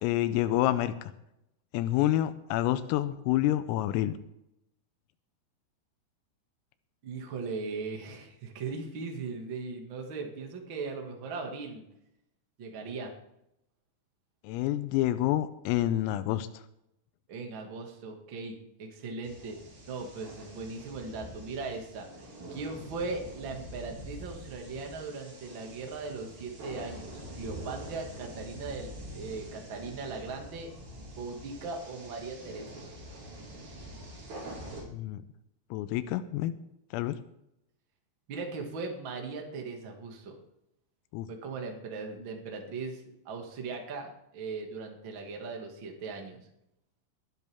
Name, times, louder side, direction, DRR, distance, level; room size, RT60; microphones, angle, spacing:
voice 1, 0.0-0.9 1.7-4.1 14.4-16.5 34.9-35.2 35.7-36.5 36.9-37.2 41.1-41.3, left 14 dB, 90° left, 12 dB, 3.4 m, -28 dB
voice 2, 7.0-11.8 12.6-13.1 17.3-19.6 19.9-30.7 31.1-32.8 38.3-40.3 41.3-46.4, right 4 dB, 75° right, 2 dB, 1.1 m, -39 dB
sound 1, 19.2-34.8, equal, 40° right, 5.5 m, -45 dB
21.0 x 10.5 x 3.6 m, 0.82 s
omnidirectional pair, 5.9 m